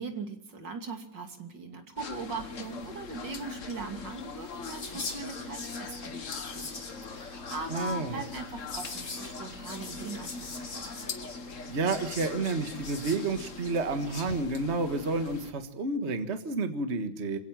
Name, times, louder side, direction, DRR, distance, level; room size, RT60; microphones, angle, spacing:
voice 1, 0.0-6.8 7.1-10.9, right 3 dB, 70° right, 5 dB, 3.4 m, -40 dB
sound 1, 2.0-15.5, left 4 dB, 45° left, 1.6 m, -42 dB
Whispering, 4.6-14.2, left 3 dB, 85° left, 4.3 m, -43 dB
voice 2, 7.7-8.2 11.7-17.4, right 3 dB, 35° right, 8 dB, 1.8 m, -30 dB
27.0 x 16.5 x 7.5 m, 0.76 s
omnidirectional pair, 2.0 m